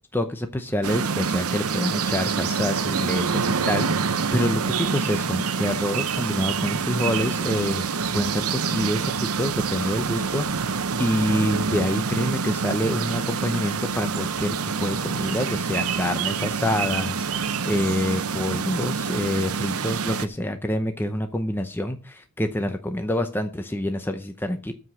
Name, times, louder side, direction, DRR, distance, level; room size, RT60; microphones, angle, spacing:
voice 1, 0.1-7.8 8.1-24.7, left 1 dB, 10° left, 6 dB, 0.7 m, -27 dB
sound 1, 0.8-20.3, right 5 dB, 75° right, 0.8 m, -26 dB
13.5 x 5.0 x 7.0 m, 0.36 s
head